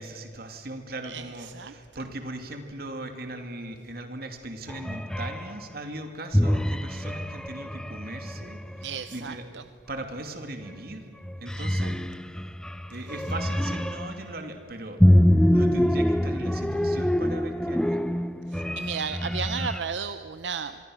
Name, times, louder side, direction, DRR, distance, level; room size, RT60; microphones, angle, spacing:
voice 1, 0.0-8.6 9.1-9.4 9.9-11.1 11.4-12.0 12.9-15.0 15.5-18.0, right 1 dB, 55° right, 6 dB, 2.5 m, -38 dB
voice 2, 1.0-1.7 8.8-9.6 11.5-11.9 18.5-20.8, right 6 dB, 80° right, 10 dB, 0.7 m, -34 dB
sound 1, 4.7-5.5 6.3-9.0 10.6-10.9 11.2-14.2 15.0-19.8, equal, 5° left, 0.5 m, -25 dB
26.5 x 23.0 x 6.4 m, 2.2 s
head